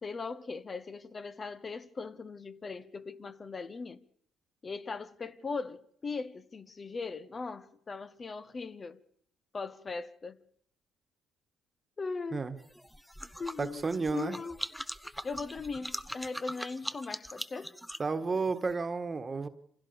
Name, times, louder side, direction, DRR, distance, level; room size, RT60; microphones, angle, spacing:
voice 1, 0.0-4.0 4.6-9.0 9.5-10.4 12.0-12.4 13.4-13.8 14.1-14.6 15.2-17.7, left 4 dB, 35° left, 1.1 m, -39 dB
sound 1, 12.6-18.7, equal, ahead, 0.9 m, -42 dB
voice 2, 13.6-14.4 18.0-19.5, right 4 dB, 30° right, 1.6 m, -32 dB
26.0 x 16.0 x 7.0 m
supercardioid pair, 70°, 0 cm